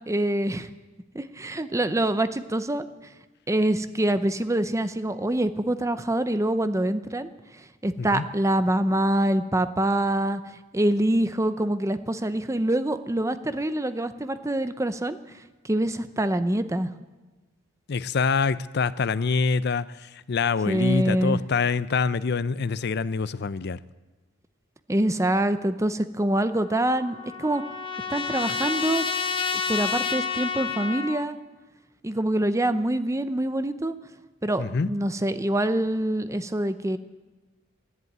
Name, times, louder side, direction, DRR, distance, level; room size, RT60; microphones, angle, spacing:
voice 1, 0.1-0.7 1.1-2.8 3.5-7.3 7.8-10.4 10.7-15.2 15.6-16.9 20.7-21.4 24.9-27.6 28.1-29.0 29.7-31.4 32.0-34.0 34.4-37.0, right 1 dB, 15° right, 11 dB, 0.7 m, -25 dB
voice 2, 17.9-23.8 34.6-34.9, left 5 dB, 55° left, 16 dB, 0.5 m, -25 dB
Trumpet, 26.5-31.3, left 5 dB, 25° left, 0.9 m, -30 dB
13.5 x 11.0 x 9.4 m, 1.2 s
head